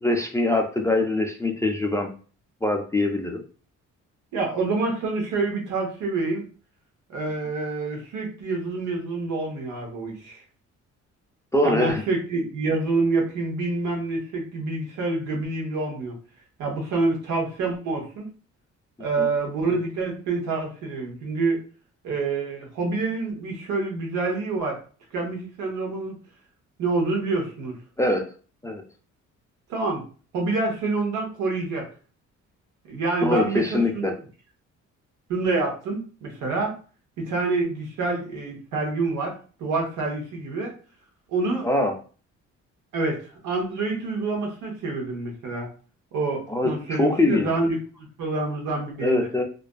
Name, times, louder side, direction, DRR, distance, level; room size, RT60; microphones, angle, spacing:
voice 1, 0.0-2.1 2.6-3.4 11.5-12.0 19.2-19.3 28.0-28.3 28.6-28.8 33.2-34.1 41.6-41.9 46.5-47.5 49.0-49.4, left 2 dB, 10° left, 2 dB, 0.3 m, -23 dB
voice 2, 4.3-6.4 7.1-10.4 11.6-16.1 16.6-18.3 19.0-21.6 22.0-24.8 25.1-26.1 26.8-27.8 29.7-30.0 30.3-31.9 32.9-34.1 35.3-36.7 37.2-40.8 41.3-41.7 42.9-45.7 46.1-49.3, right 3 dB, 85° right, 0 dB, 1.0 m, -27 dB
2.4 x 2.3 x 2.2 m, 0.38 s
cardioid pair, 90°, 30 cm